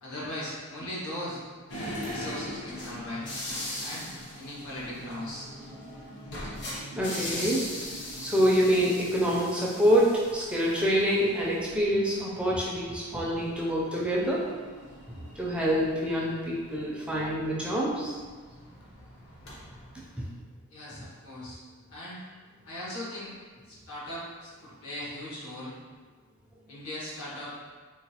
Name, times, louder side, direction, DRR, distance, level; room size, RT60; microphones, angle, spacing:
voice 1, 0.0-1.4 1.7-3.2 3.8-4.1 4.3-5.5 20.7-21.6 21.9-22.2 22.6-23.3 23.7-25.7 26.7-27.5, left 1 dB, 85° left, -8 dB, 1.3 m, -38 dB
sound 1, 1.7-20.3, left 1 dB, 50° left, 0.7 m, -41 dB
voice 2, 6.9-7.6 8.2-14.4 15.1-18.1 20.2-20.3, equal, 5° right, -5 dB, 0.4 m, -26 dB
3.9 x 2.4 x 2.8 m, 1.5 s
head